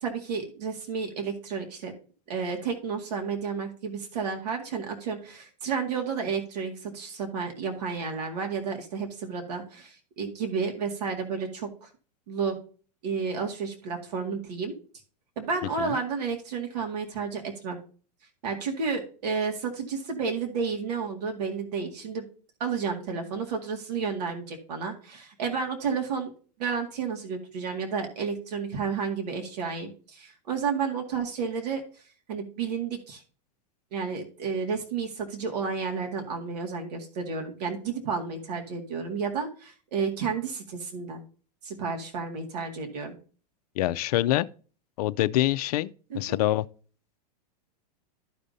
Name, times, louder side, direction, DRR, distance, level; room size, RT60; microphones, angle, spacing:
voice 1, 0.0-1.9 2.3-11.9 12.3-12.6 13.0-14.8 15.4-17.8 18.4-22.3 22.6-26.3 26.6-33.2 33.9-41.2 41.6-43.2 46.1-46.2, right 5 dB, 75° right, 2.1 m, -31 dB
voice 2, 43.8-44.5 45.0-46.6, left 15 dB, 65° left, 0.5 m, -25 dB
14.0 x 5.1 x 2.7 m
hypercardioid pair, 130°, 21 cm